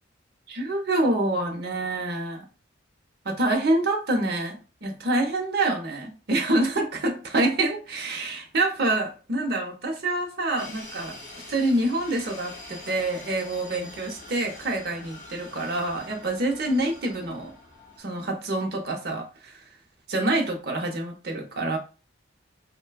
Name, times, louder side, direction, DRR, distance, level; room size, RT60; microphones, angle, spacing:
voice 1, 0.5-2.4 3.2-11.2 11.5-17.5 18.0-19.6 20.1-21.8, right 2 dB, 50° right, 2 dB, 0.6 m, -26 dB
sound 1, 10.6-18.0, left 2 dB, 60° left, 1.4 m, -44 dB
3.2 x 2.2 x 2.2 m, 0.32 s
head